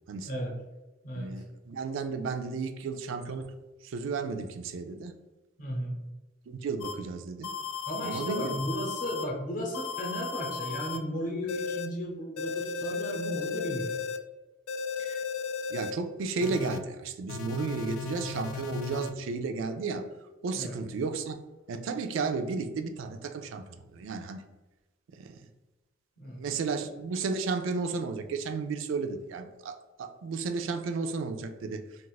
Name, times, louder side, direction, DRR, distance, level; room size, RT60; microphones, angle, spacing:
voice 1, 1.2-3.5 3.8-5.1 6.5-7.5 8.0-8.6 15.0-15.2 15.7-20.1 20.4-21.4 21.7-23.6 23.9-24.4 25.1-25.4 26.3-31.8, right 4 dB, 65° right, 7 dB, 0.3 m, -33 dB
voice 2, 5.6-6.0 7.9-14.0 20.6-20.8 26.2-26.8, equal, 40° left, -1 dB, 0.8 m, -35 dB
sound 1, 6.8-6.9 7.4-9.2 9.7-11.0 11.5-11.9 12.4-14.2 14.7-15.9 16.4-16.8 17.3-19.1, left 5 dB, 80° left, 0.3 m, -35 dB
2.4 x 2.4 x 3.9 m, 1.1 s
head